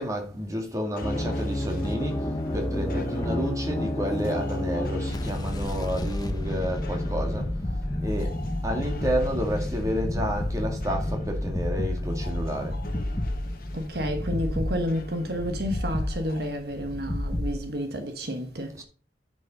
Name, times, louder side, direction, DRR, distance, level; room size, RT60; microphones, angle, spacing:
voice 1, 0.0-7.5 8.0-8.4 8.6-12.8 18.7-18.8, equal, 20° right, 2.3 m, -30 dB
sound 1, 0.9-16.5, left 2 dB, 55° left, 1.3 m, -46 dB
sound 2, 1.0-17.6, left 1 dB, 20° left, 0.8 m, -30 dB
sound 3, 1.6-6.4, equal, 5° left, 4.9 m, -48 dB
voice 2, 13.7-18.8, equal, 60° right, 1.4 m, -30 dB
9.9 x 5.4 x 5.4 m
head